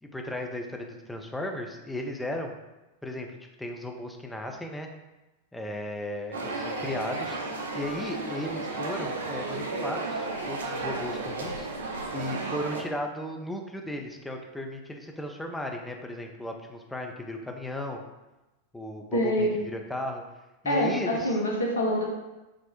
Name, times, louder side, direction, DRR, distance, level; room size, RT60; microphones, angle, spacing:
voice 1, 0.0-2.6 3.0-4.9 5.5-7.4 7.7-11.7 12.1-18.0 18.7-20.2 20.6-21.4, left 1 dB, 5° left, 2 dB, 0.4 m, -35 dB
sound 1, 6.3-12.8, right 3 dB, 65° right, 0.4 m, -33 dB
voice 2, 19.1-19.6 20.6-22.1, equal, 70° left, 0 dB, 0.6 m, -25 dB
4.1 x 2.0 x 2.8 m, 1.1 s
figure-of-eight pair, 90°, 0 cm